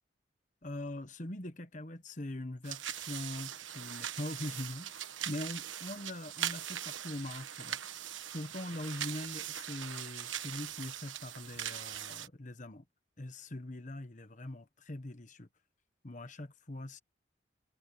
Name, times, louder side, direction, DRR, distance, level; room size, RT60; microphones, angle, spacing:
voice 1, 0.6-7.8 8.3-12.8 13.2-15.5 16.0-17.0, left 1 dB, 40° left, 1.2 m, -42 dB
sound 1, 2.6-12.3, right 10 dB, 80° right, 1.3 m, -41 dB
head